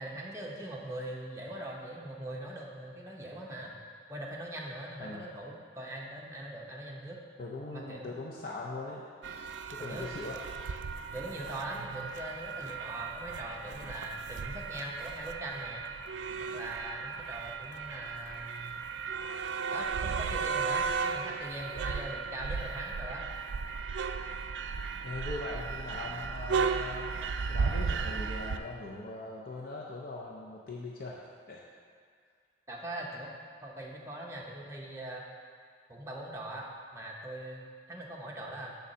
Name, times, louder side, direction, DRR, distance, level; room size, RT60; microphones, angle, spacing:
voice 1, 0.0-3.8 4.1-7.2 7.7-8.1 9.8-10.1 11.1-15.8 16.5-18.8 19.7-23.3 32.7-33.3 33.6-35.2 35.9-38.8, right 1 dB, 15° right, -2 dB, 0.7 m, -41 dB
voice 2, 7.4-9.0 9.7-10.4 25.0-27.1 27.5-31.1 31.5-31.6, left 2 dB, 50° left, -3 dB, 0.6 m, -40 dB
sound 1, 9.2-28.6, right 5 dB, 80° right, 0.3 m, -35 dB
6.9 x 3.9 x 6.4 m, 2.1 s
head